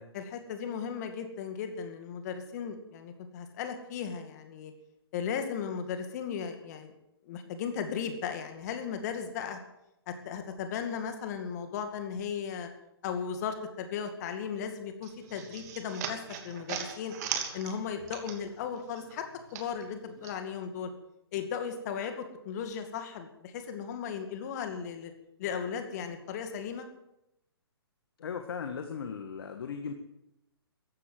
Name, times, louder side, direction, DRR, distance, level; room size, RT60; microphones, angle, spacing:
voice 1, 0.1-4.7 5.1-6.9 7.3-9.6 10.1-12.7 13.0-17.2 17.5-19.3 19.5-20.9 21.3-25.1 25.4-26.9, left 7 dB, 40° left, 7 dB, 2.3 m, -36 dB
sound 1, 15.0-18.7 18.9-20.4, right 8 dB, 40° right, 2.8 m, -38 dB
voice 2, 28.2-29.9, left 6 dB, 60° left, 6 dB, 1.7 m, -37 dB
15.0 x 12.0 x 7.8 m, 0.85 s
hypercardioid pair, 135°, 14 cm